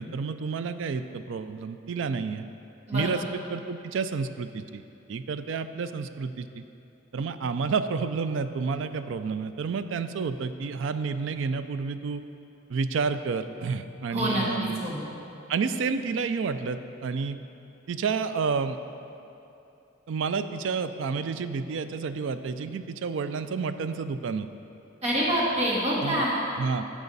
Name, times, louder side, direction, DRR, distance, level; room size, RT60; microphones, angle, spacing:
voice 1, 0.0-2.4 2.9-4.8 5.1-6.6 7.1-12.2 12.7-14.8 15.5-17.4 17.9-18.8 20.1-24.5 26.0-26.2 26.6-26.8, right 5 dB, 65° right, 11 dB, 0.3 m, -30 dB
voice 2, 14.1-15.1 25.0-26.4, equal, 35° right, -6 dB, 1.6 m, -26 dB
13.0 x 4.9 x 4.0 m, 2.9 s
head